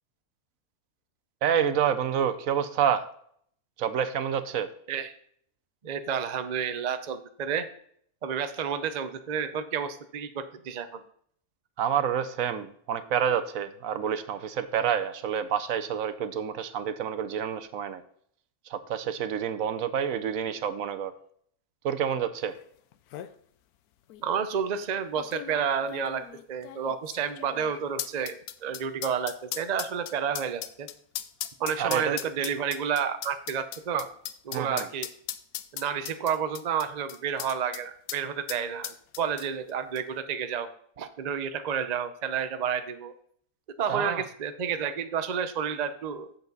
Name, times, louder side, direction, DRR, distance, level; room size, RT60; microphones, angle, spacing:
voice 1, 1.4-3.1 3.8-4.7 11.8-18.0 18.7-21.1 21.8-22.5 31.8-32.2 34.5-34.9 43.9-44.2, right 8 dB, 70° right, 11 dB, 1.0 m, -28 dB
voice 2, 5.8-7.7 8.2-11.0 24.2-26.2 26.5-30.9 31.6-34.1 34.4-35.1 35.7-40.7 41.0-43.1 43.8-46.3, right 7 dB, 50° right, 9 dB, 0.5 m, -30 dB
sound 1, 22.6-22.7 22.9-23.3 24.1-24.2 25.1-37.8 38.1-38.2 38.5-39.7 40.0-40.1, left 12 dB, 85° left, 1.1 m, -38 dB
8.1 x 7.1 x 3.9 m, 0.64 s
omnidirectional pair, 1.6 m